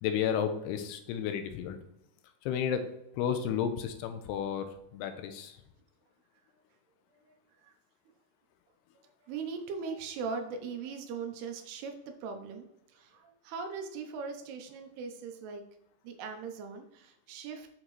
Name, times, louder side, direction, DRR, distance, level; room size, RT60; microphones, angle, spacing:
voice 1, 0.0-1.8 2.5-2.8 3.2-5.5, left 8 dB, 80° left, 8 dB, 2.6 m, -32 dB
voice 2, 9.3-11.9 12.2-12.7 12.9-15.6 16.0-17.7, right 5 dB, 80° right, 5 dB, 2.8 m, -39 dB
7.4 x 6.4 x 3.2 m, 0.84 s
omnidirectional pair, 4.9 m